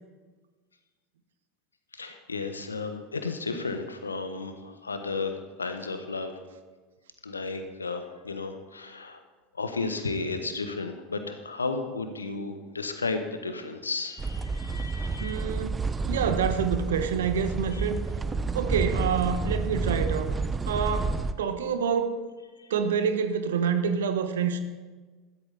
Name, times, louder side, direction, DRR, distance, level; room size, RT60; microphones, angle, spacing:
voice 1, 2.0-5.3 5.6-6.4 7.2-9.2 9.6-15.4 17.7-17.8 22.6-22.7, left 3 dB, 85° left, 7 dB, 1.3 m, -33 dB
sound 1, 14.2-21.3, right 4 dB, 20° right, 0.8 m, -30 dB
voice 2, 15.2-18.0 18.5-20.3 20.7-22.2 22.7-24.6, right 6 dB, 70° right, 9 dB, 1.2 m, -27 dB
14.5 x 13.0 x 4.2 m, 1.3 s
figure-of-eight pair, 75°, 0 cm